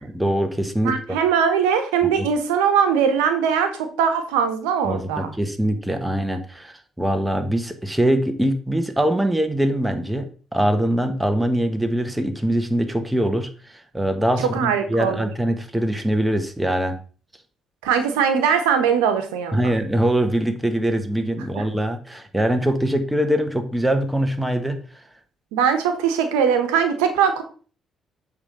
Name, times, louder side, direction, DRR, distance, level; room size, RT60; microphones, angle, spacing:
voice 1, 0.0-1.2 2.2-2.3 4.8-17.0 19.5-24.8, right 1 dB, 10° right, 7 dB, 1.3 m, -23 dB
voice 2, 0.8-5.3 14.5-15.3 17.8-19.7 21.6-21.7 25.5-27.4, right 7 dB, 85° right, 7 dB, 1.0 m, -21 dB
8.1 x 3.6 x 5.2 m, 0.40 s
hypercardioid pair, 55°, 0 cm